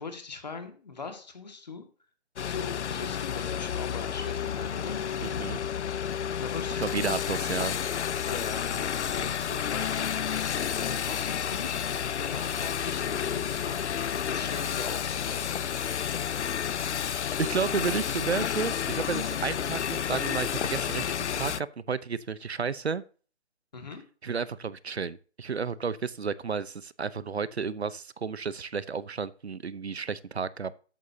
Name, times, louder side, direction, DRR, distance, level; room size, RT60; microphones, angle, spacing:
voice 1, 0.0-1.8 2.5-5.0 6.4-7.4 8.3-11.8 12.2-13.8 14.1-15.5 23.7-24.0, left 4 dB, 35° left, 1.9 m, -41 dB
sound 1, 2.4-21.6, left 8 dB, 75° left, 0.5 m, -31 dB
sound 2, 4.4-7.8, left 10 dB, ahead, 0.7 m, -49 dB
voice 2, 5.2-5.6 6.8-7.8 17.4-21.0 21.4-23.0 24.2-30.7, right 5 dB, 65° right, 0.8 m, -32 dB
13.5 x 9.3 x 2.8 m
hypercardioid pair, 175°, 35 cm